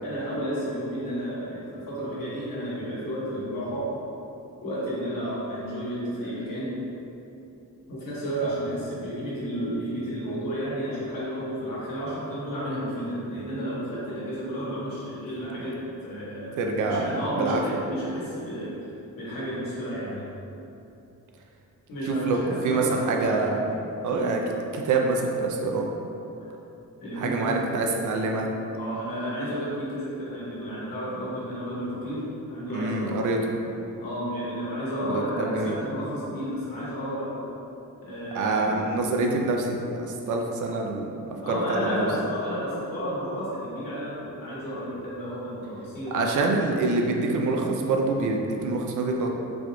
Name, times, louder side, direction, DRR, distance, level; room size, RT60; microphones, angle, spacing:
voice 1, 0.0-3.9 4.6-6.8 7.9-16.5 16.8-18.8 19.2-20.3 21.9-23.5 24.1-24.4 27.0-27.7 28.7-33.3 34.0-37.4 38.0-39.2 41.4-46.5, equal, 85° left, -9 dB, 1.2 m, -32 dB
voice 2, 16.6-17.6 22.1-22.4 22.6-23.6 24.0-24.4 24.7-25.9 27.2-28.5 32.7-33.4 35.0-35.7 38.3-39.8 40.3-41.1 41.5-42.1 46.1-49.3, right 3 dB, 65° right, 1 dB, 0.5 m, -26 dB
4.1 x 3.0 x 2.2 m, 2.8 s
wide cardioid pair, 150°, 33 cm